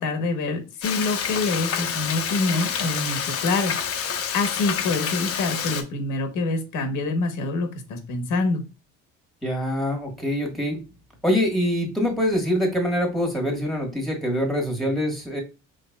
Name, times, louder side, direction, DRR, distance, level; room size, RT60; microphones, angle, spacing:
voice 1, 0.0-3.8 4.3-8.6, left 3 dB, 65° left, 6 dB, 1.2 m, -26 dB
Frying (food), 0.8-5.8, left 7 dB, 45° left, 0.8 m, -28 dB
voice 2, 9.4-10.8 11.2-15.4, equal, ahead, 1 dB, 1.5 m, -24 dB
5.1 x 3.3 x 2.3 m, 0.29 s
cardioid pair, 115°, 33 cm